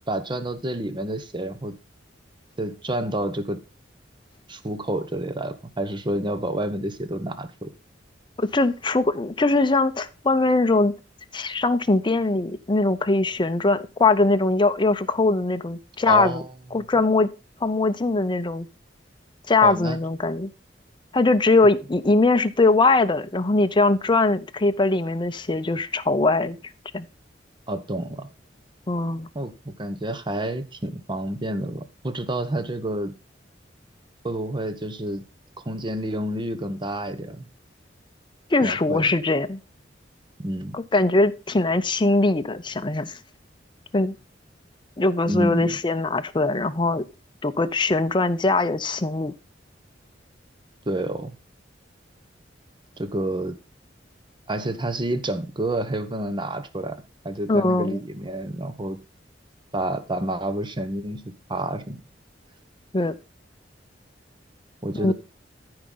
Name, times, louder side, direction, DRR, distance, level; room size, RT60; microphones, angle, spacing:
voice 1, 0.1-1.8 2.6-3.6 4.5-7.7 16.1-16.5 19.6-20.0 27.7-28.3 29.3-33.1 34.2-35.2 35.7-37.5 38.6-39.1 40.4-40.8 45.3-45.8 50.9-51.4 53.0-53.6 54.5-59.0 59.7-62.0 64.8-65.1, right 1 dB, 25° right, 0.9 m, -29 dB
voice 2, 8.4-10.9 11.3-16.4 16.7-17.3 17.6-18.7 19.5-20.5 21.1-26.6 26.9-27.1 28.9-29.3 38.5-39.6 40.7-43.2 43.9-44.1 45.0-47.1 47.4-49.3 57.5-58.0 62.9-63.2 65.0-65.1, left 3 dB, 25° left, 0.6 m, -21 dB
14.0 x 4.8 x 3.8 m
head